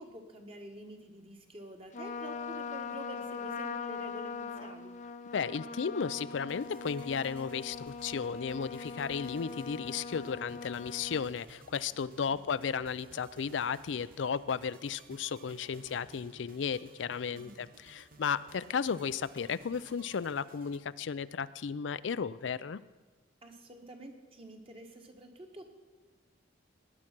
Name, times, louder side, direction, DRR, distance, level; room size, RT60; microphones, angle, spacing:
voice 1, 0.0-4.9 11.9-12.5 17.3-17.7 23.4-25.7, equal, 30° right, 4 dB, 1.7 m, -48 dB
Trumpet, 1.9-11.3, left 5 dB, 40° left, 0.6 m, -41 dB
voice 2, 5.3-22.8, left 6 dB, 85° left, 16 dB, 0.4 m, -34 dB
sound 1, 6.3-20.8, right 3 dB, 50° right, 1.3 m, -58 dB
18.5 x 9.8 x 6.0 m, 1.3 s
head